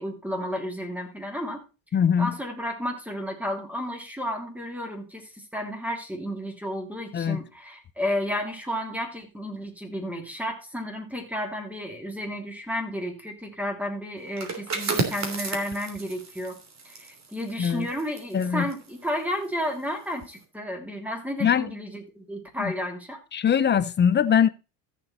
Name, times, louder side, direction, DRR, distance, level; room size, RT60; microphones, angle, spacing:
voice 1, 0.0-1.6 2.2-16.6 16.8-23.2, equal, 5° right, 2.9 m, -32 dB
voice 2, 1.9-2.3 7.1-7.4 17.6-17.9 18.3-18.7 21.4-21.7 22.6-22.7 23.3-24.5, left 8 dB, 25° left, 0.6 m, -22 dB
sound 1, 14.3-19.8 20.1-20.4, right 3 dB, 35° right, 3.1 m, -33 dB
14.0 x 6.9 x 4.3 m
cardioid pair, 125°, 48 cm